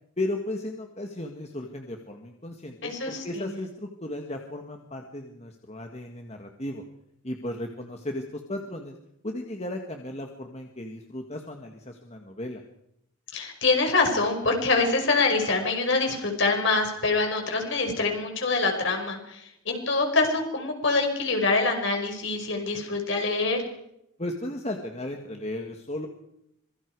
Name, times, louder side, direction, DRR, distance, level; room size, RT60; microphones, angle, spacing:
voice 1, 0.2-6.8 7.2-9.0 9.2-12.6 24.2-26.1, left 1 dB, 30° left, 3 dB, 1.8 m, -35 dB
voice 2, 2.8-3.4 13.3-23.6, left 3 dB, 55° left, 3 dB, 5.7 m, -25 dB
26.0 x 23.0 x 4.8 m, 0.79 s
head